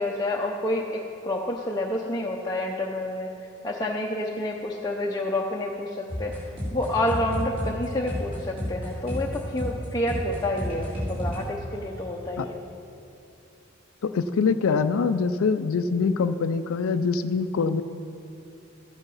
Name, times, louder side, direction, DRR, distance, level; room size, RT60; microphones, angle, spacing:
voice 1, 0.0-3.3 3.6-6.3 6.7-12.6, left 1 dB, 20° left, -2 dB, 0.6 m, -29 dB
sound 1, 6.1-11.4, equal, 25° right, 3.0 m, -31 dB
voice 2, 14.0-17.8, left 5 dB, 90° left, 10 dB, 0.4 m, -24 dB
13.5 x 8.0 x 5.5 m, 2.7 s
head